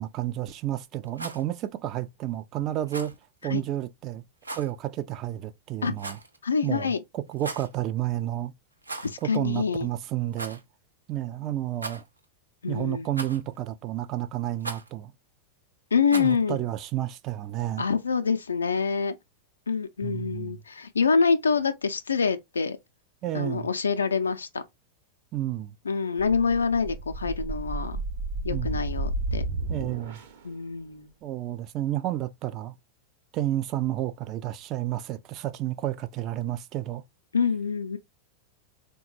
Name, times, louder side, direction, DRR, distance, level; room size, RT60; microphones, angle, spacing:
voice 1, 0.0-3.1 3.4-4.2 4.5-6.2 6.6-8.5 9.2-10.6 11.1-12.0 12.7-15.1 16.1-17.9 20.0-20.6 23.2-23.7 25.3-25.8 28.5-28.8 29.7-30.2 31.2-32.7 33.3-37.0, right 13 dB, 35° right, 0.4 m, -31 dB
Rattle, 1.1-1.4 2.9-3.2 4.4-4.7 6.0-6.4 7.3-7.7 8.8-9.2 9.5-9.6 10.3-10.6 11.7-12.2 13.1-13.6 14.6-14.9 16.1-16.4, right 2 dB, 80° right, 0.6 m, -38 dB
voice 2, 6.4-7.0 9.0-9.9 12.6-13.1 15.9-16.6 17.8-19.2 19.7-22.8 23.3-24.6 25.9-28.0 28.4-29.4 30.4-31.1 37.3-38.0, left 5 dB, 75° left, 0.4 m, -26 dB
sound 1, 26.2-30.5, right 2 dB, 55° right, 0.8 m, -32 dB
3.7 x 2.2 x 3.0 m
figure-of-eight pair, 90°, 0 cm